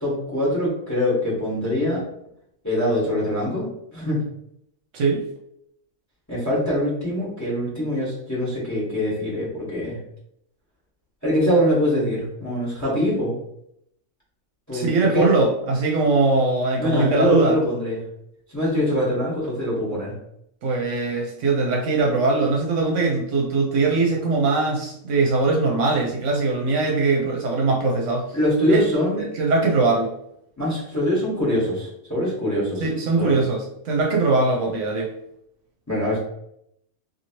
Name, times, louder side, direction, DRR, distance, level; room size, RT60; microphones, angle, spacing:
voice 1, 0.0-2.0 2.6-3.7 3.9-4.2 6.3-10.0 11.2-13.3 14.7-15.3 16.8-18.0 18.5-20.1 28.3-29.2 30.6-32.8 33.2-33.3 35.9-36.2, equal, 15° left, -6 dB, 1.2 m, -23 dB
voice 2, 14.7-17.6 20.6-28.4 28.7-28.8 29.2-30.1 32.8-35.1, right 3 dB, 70° right, 0 dB, 0.9 m, -21 dB
2.9 x 2.7 x 2.8 m, 0.75 s
omnidirectional pair, 1.4 m